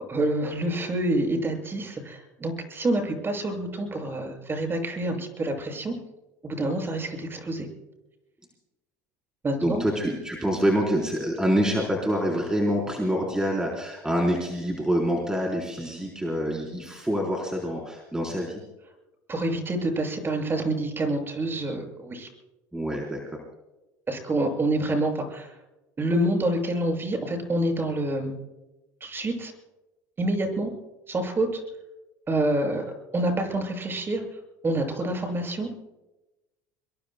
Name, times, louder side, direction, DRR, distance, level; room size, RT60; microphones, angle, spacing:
voice 1, 0.1-5.9 6.4-7.7 9.4-9.8 19.3-22.3 24.1-25.5 26.0-28.3 29.0-29.5 30.2-30.7 31.1-31.6 32.3-32.9 33.1-35.7, right 1 dB, 25° right, 3 dB, 6.7 m, -27 dB
voice 2, 9.6-18.6 22.7-23.2, equal, 5° right, -1 dB, 4.1 m, -26 dB
26.0 x 23.0 x 2.3 m, 1.0 s
supercardioid pair, 95°, 9 cm